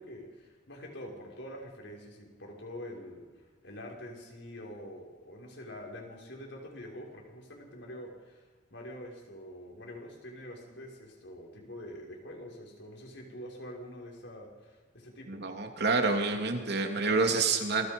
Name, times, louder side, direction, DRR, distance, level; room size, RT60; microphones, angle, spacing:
voice 1, 0.0-15.4, equal, 65° left, 0 dB, 6.1 m, -45 dB
voice 2, 15.3-17.9, right 3 dB, 60° right, 4 dB, 2.9 m, -28 dB
27.5 x 22.5 x 5.5 m, 1.5 s
head